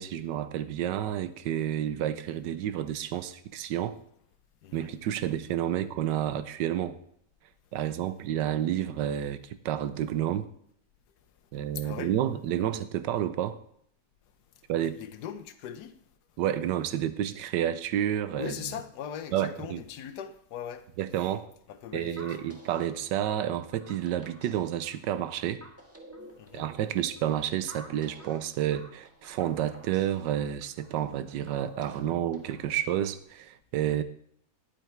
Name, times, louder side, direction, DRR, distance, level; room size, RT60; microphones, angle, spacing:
voice 1, 0.0-4.0 4.7-7.0 7.7-9.4 9.6-10.5 11.5-13.6 14.7-15.0 16.4-18.5 19.3-19.8 21.0-21.5 21.9-25.6 26.5-34.0, right 11 dB, 85° right, 1.3 m, -30 dB
voice 2, 4.6-5.0 11.7-12.1 14.8-15.9 18.4-20.8 21.7-22.4 26.4-26.7 33.8-34.0, left 9 dB, 70° left, 1.3 m, -40 dB
sound 1, 22.2-33.2, equal, 10° right, 1.2 m, -51 dB
10.5 x 8.7 x 4.5 m
omnidirectional pair, 1.9 m